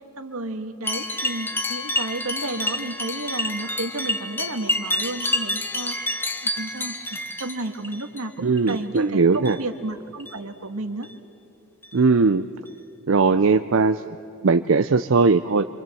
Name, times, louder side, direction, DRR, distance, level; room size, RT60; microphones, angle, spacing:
voice 1, 0.2-11.1, right 2 dB, 85° right, 7 dB, 1.7 m, -32 dB
sound 1, 0.8-8.2 8.6-9.0 9.3-9.6 10.2-10.4 11.0-11.1 11.8-11.9 12.7-12.8, left 1 dB, 10° left, 1.0 m, -28 dB
voice 2, 8.4-9.6 11.9-12.4 13.1-14.2 14.4-15.7, right 4 dB, 65° right, 10 dB, 0.5 m, -19 dB
27.0 x 25.0 x 7.8 m, 2.9 s
head